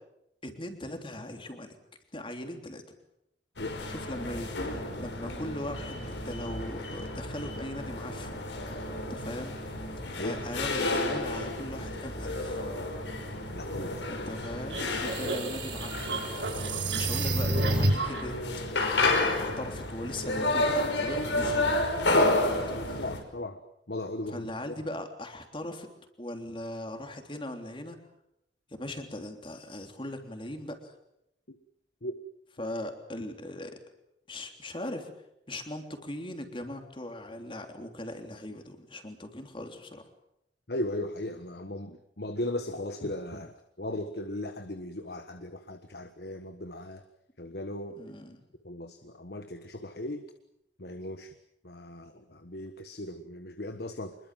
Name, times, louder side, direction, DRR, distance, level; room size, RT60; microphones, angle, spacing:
voice 1, 0.4-1.8 2.1-2.8 3.9-4.6 5.0-9.5 10.2-12.7 14.1-18.4 18.8-21.7 22.1-22.5 22.9-23.0 24.2-25.9 26.2-28.1 28.7-30.9 32.6-33.8 34.3-35.1 35.5-40.0 47.9-48.4, left 1 dB, 30° left, 5 dB, 3.4 m, -39 dB
sound 1, 3.6-23.2, left 2 dB, 85° left, 5.4 m, -31 dB
voice 2, 13.5-13.9 22.1-22.2 23.0-23.6 23.9-24.8 31.5-31.6 32.0-32.1 32.6-32.7 40.7-47.0 47.4-48.0 48.6-50.2 50.8-51.3 51.6-54.2, left 1 dB, 60° left, 8 dB, 1.4 m, -37 dB
sound 2, 14.7-18.2, right 2 dB, 85° right, 5.3 m, -29 dB
25.5 x 22.0 x 7.6 m, 0.80 s
head